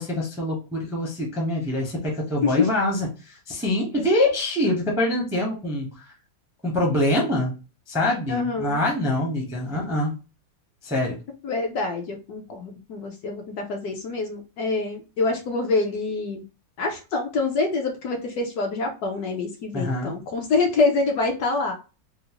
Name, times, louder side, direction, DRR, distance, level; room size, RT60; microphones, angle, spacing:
voice 1, 0.0-6.1 6.6-7.5 7.9-10.1 10.8-11.2 19.7-20.1, left 1 dB, 5° right, -1 dB, 0.4 m, -25 dB
voice 2, 8.3-8.8 11.4-16.4 16.8-21.7, left 3 dB, 70° left, 2 dB, 1.0 m, -26 dB
3.7 x 2.1 x 2.9 m, 0.31 s
omnidirectional pair, 2.0 m